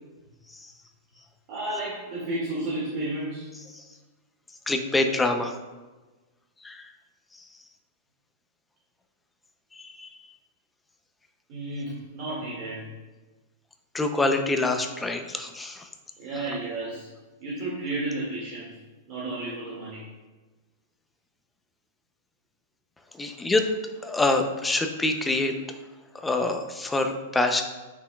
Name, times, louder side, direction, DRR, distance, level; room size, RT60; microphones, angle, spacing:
voice 1, 1.5-3.5 11.5-12.8 16.2-17.1 17.4-18.8 19.1-20.0, right 2 dB, 40° right, -7 dB, 1.9 m, -32 dB
voice 2, 4.7-5.5 6.6-6.9 9.7-10.1 13.9-15.9 23.2-23.7 24.0-25.5 26.2-27.6, left 2 dB, 5° left, 5 dB, 0.5 m, -26 dB
8.3 x 5.8 x 2.2 m, 1.2 s
supercardioid pair, 165°, 0 cm